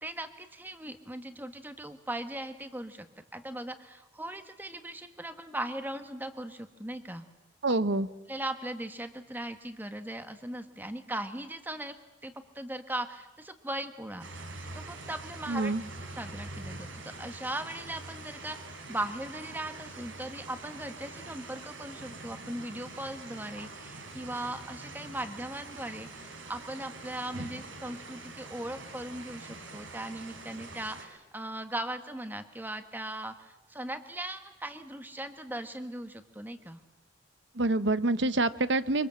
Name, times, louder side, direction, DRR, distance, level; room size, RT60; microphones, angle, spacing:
voice 1, 0.0-3.1 3.3-7.3 8.3-11.9 12.2-14.2 14.7-15.7 16.1-18.6 18.9-36.8, right 1 dB, 10° right, 8 dB, 1.4 m, -39 dB
voice 2, 7.6-8.1 15.5-15.8 37.5-39.1, right 2 dB, 65° right, 14 dB, 1.0 m, -26 dB
sound 1, 14.2-31.0, right 2 dB, 85° right, 4.1 m, -44 dB
25.0 x 24.5 x 7.7 m, 1.1 s
head